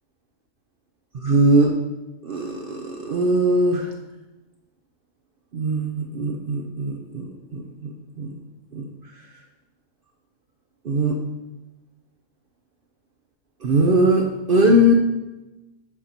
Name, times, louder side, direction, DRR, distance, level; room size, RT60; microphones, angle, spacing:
voice 1, 1.1-1.8 2.2-3.9 5.5-8.3 8.7-8.9 10.8-11.2 13.6-14.9, right 1 dB, 50° right, 2 dB, 0.8 m, -20 dB
8.5 x 5.3 x 4.3 m, 1.0 s
omnidirectional pair, 1.4 m